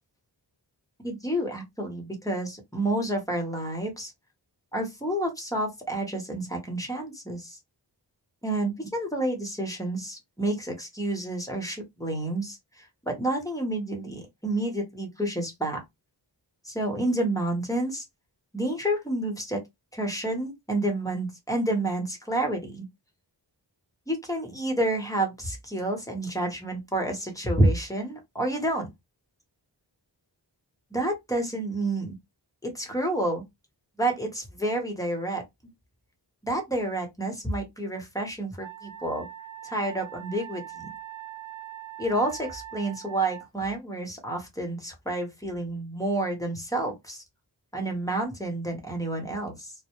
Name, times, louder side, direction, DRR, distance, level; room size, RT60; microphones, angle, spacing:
voice 1, 1.0-4.1 4.7-7.6 8.4-15.8 16.6-18.0 18.5-19.6 19.9-22.9 24.1-28.9 30.9-32.2 32.6-33.4 34.0-35.4 36.4-39.3 39.6-40.9 42.0-47.2 47.7-49.7, right 1 dB, 10° left, 0.9 m, -29 dB
Wind instrument woodwind instrument, 38.6-43.5, right 12 dB, 50° right, 0.5 m, -42 dB
2.1 x 2.1 x 2.9 m
wide cardioid pair, 65°, 43 cm